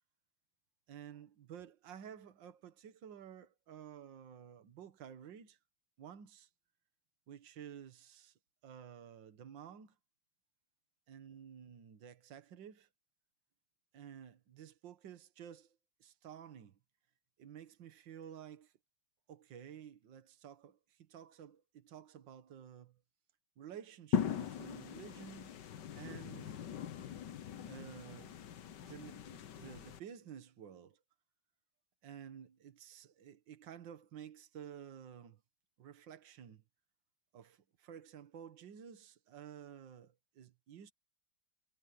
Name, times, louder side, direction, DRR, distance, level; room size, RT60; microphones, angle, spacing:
voice 1, 0.9-5.6 6.0-6.5 7.3-8.3 8.6-10.0 11.1-12.9 13.9-16.8 17.4-18.7 19.3-23.0 23.6-25.5 25.9-26.6 27.7-28.4 28.8-31.0 32.0-35.4 35.8-36.6 37.3-40.9, right 9 dB, 70° right, 2.0 m, -52 dB
sound 1, 24.1-30.0, left 9 dB, 65° left, 1.6 m, -40 dB
omnidirectional pair, 2.1 m